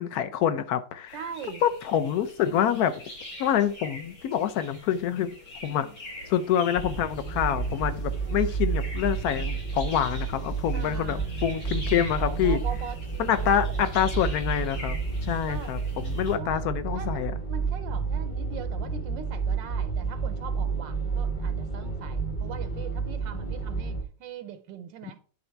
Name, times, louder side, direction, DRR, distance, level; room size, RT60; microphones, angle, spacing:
voice 1, 0.0-1.2 1.6-2.9 3.4-5.3 5.6-5.9 6.3-12.6 13.2-15.0 15.2-17.3 25.0-25.1, left 9 dB, 65° left, 1.1 m, -26 dB
sound 1, 1.1-16.3, left 1 dB, 85° left, 4.8 m, -44 dB
voice 2, 1.1-1.6 2.4-2.5 5.6-6.0 6.6-6.7 8.2-8.5 10.7-11.3 12.2-13.9 15.5-15.8 16.3-16.7 16.9-25.2, right 8 dB, 80° right, 1.3 m, -42 dB
sound 2, 6.8-24.0, right 5 dB, 30° left, 1.0 m, -30 dB
9.7 x 4.0 x 4.5 m
omnidirectional pair, 2.0 m